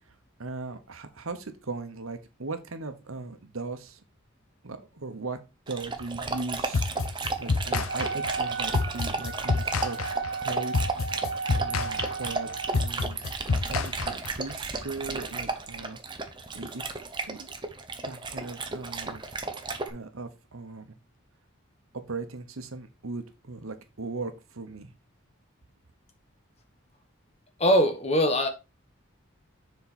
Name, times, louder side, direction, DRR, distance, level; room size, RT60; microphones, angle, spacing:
voice 1, 0.4-4.0 4.6-5.4 5.7-10.0 10.3-10.9 11.5-13.2 13.5-16.0 16.5-16.8 17.3-17.5 18.0-19.2 19.9-21.0 22.1-24.9, right 3 dB, 75° right, 9 dB, 1.0 m, -38 dB
Dog, 5.7-19.9, right 3 dB, 20° right, 0.7 m, -34 dB
sound 1, 6.7-14.5, left 4 dB, 80° left, 0.6 m, -29 dB
Wind instrument woodwind instrument, 7.9-12.9, right 4 dB, 45° right, 0.4 m, -35 dB
voice 2, 27.6-28.5, equal, 30° left, 6 dB, 1.1 m, -21 dB
7.2 x 4.6 x 4.2 m, 0.29 s
head